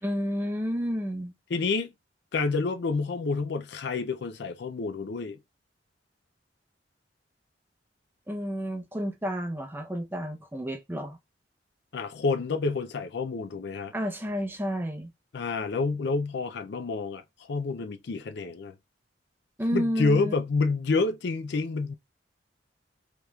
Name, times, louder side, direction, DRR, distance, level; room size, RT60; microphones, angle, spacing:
voice 1, 0.0-1.3 8.3-11.2 13.9-15.1 19.6-20.3, equal, 10° right, 0.6 m, -31 dB
voice 2, 1.5-1.9 2.3-5.4 11.9-13.9 15.3-17.2 17.5-18.7 19.7-21.9, left 4 dB, 65° left, 0.4 m, -28 dB
5.1 x 2.9 x 2.3 m
head